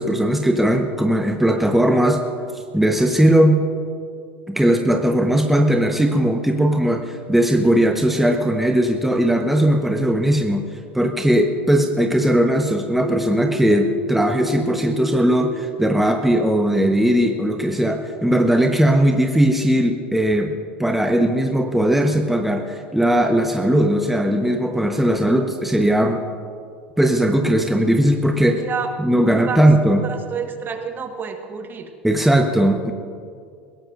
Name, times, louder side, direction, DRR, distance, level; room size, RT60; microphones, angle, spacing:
voice 1, 0.0-2.2 2.5-3.6 4.5-10.6 10.9-20.5 20.8-26.2 27.0-28.6 29.0-30.0 32.0-32.9, right 1 dB, 5° right, 3 dB, 1.0 m, -18 dB
sound 1, 13.0-16.7, right 1 dB, 70° right, 3.7 m, -30 dB
voice 2, 28.5-28.9 29.2-29.6 29.9-31.9, right 6 dB, 30° right, 5 dB, 1.5 m, -29 dB
21.0 x 17.5 x 2.6 m, 2.2 s
hypercardioid pair, 80°, 6 cm